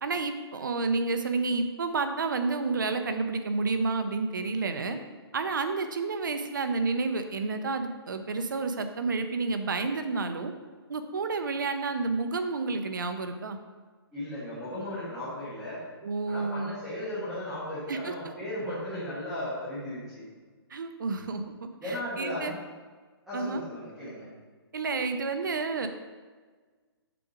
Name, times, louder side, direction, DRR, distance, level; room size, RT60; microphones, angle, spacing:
voice 1, 0.0-5.0 5.3-10.5 10.9-13.6 16.0-16.7 17.9-18.1 20.7-21.5 21.8-22.5 23.3-23.6 24.7-25.9, right 3 dB, 50° right, 8 dB, 0.6 m, -30 dB
voice 2, 14.1-15.8 16.3-20.2 21.8-22.5 23.3-24.3, left 1 dB, ahead, -16 dB, 1.2 m, -36 dB
6.9 x 4.8 x 4.9 m, 1.4 s
hypercardioid pair, 180°, 14 cm